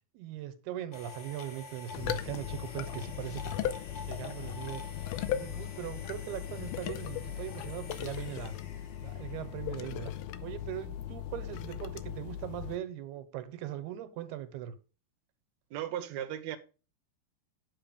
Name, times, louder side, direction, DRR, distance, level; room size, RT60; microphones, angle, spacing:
voice 1, 0.1-3.7 4.1-4.8 5.3-8.5 9.0-10.1 10.4-14.7, right 12 dB, 90° right, 3.1 m, -40 dB
sound 1, 0.9-9.8, left 3 dB, 60° left, 1.1 m, -48 dB
sound 2, 1.9-12.8, left 11 dB, 85° left, 2.6 m, -38 dB
voice 2, 15.7-16.6, right 11 dB, 65° right, 2.0 m, -36 dB
9.9 x 7.0 x 5.3 m
omnidirectional pair, 4.4 m